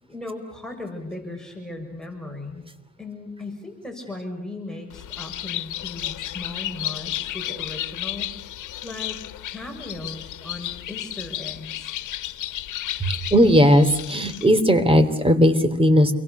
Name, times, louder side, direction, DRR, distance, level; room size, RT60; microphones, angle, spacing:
voice 1, 0.0-2.6 3.0-8.4 8.8-9.2 9.5-11.9 13.0-13.1, left 1 dB, ahead, 1 dB, 6.8 m, -36 dB
Bird, 4.9-14.6, left 13 dB, 80° left, 1.4 m, -33 dB
voice 2, 13.3-16.1, equal, 20° right, 11 dB, 3.3 m, -17 dB
29.5 x 23.0 x 6.9 m, 0.88 s
cardioid pair, 90°, 30 cm